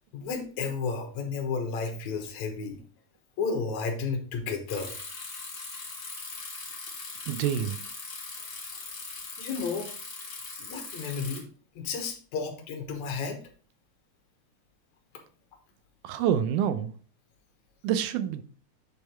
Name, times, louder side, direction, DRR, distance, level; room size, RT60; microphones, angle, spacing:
voice 1, 0.1-2.8 3.4-4.9 8.4-8.5 9.4-9.9 10.6-11.4 11.8-13.4, left 5 dB, 70° left, 2.5 m, -32 dB
Bicycle, 4.7-11.4, left 3 dB, 35° left, 1.5 m, -40 dB
voice 2, 7.3-7.8 16.0-16.9 17.8-18.4, right 9 dB, 85° right, 2.1 m, -27 dB
8.5 x 3.8 x 4.3 m
omnidirectional pair, 3.5 m